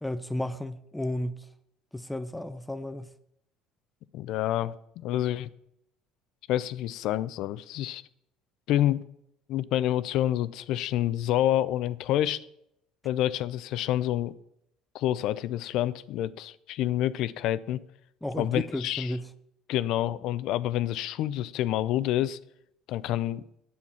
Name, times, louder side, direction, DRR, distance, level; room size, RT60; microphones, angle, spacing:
voice 1, 0.0-1.5 1.9-3.1 18.2-19.3, left 1 dB, 5° left, 0.6 m, -33 dB
voice 2, 4.1-5.5 6.5-8.0 8.7-9.0 9.5-12.4 13.0-14.4 14.9-17.8 18.4-19.1 19.7-22.4 22.9-23.4, left 13 dB, 65° left, 0.5 m, -28 dB
8.4 x 7.1 x 5.8 m
supercardioid pair, 90°, 0 cm